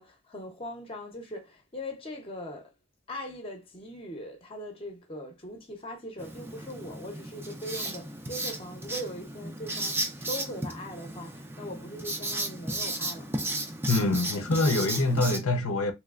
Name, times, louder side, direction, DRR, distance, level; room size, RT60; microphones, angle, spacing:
voice 1, 0.0-2.7 3.1-13.4, equal, 25° left, 0.7 m, -40 dB
Writing, 6.2-15.4, right 2 dB, 10° right, 0.4 m, -34 dB
voice 2, 13.9-15.9, left 2 dB, 70° left, 0.6 m, -25 dB
3.2 x 3.1 x 2.4 m
head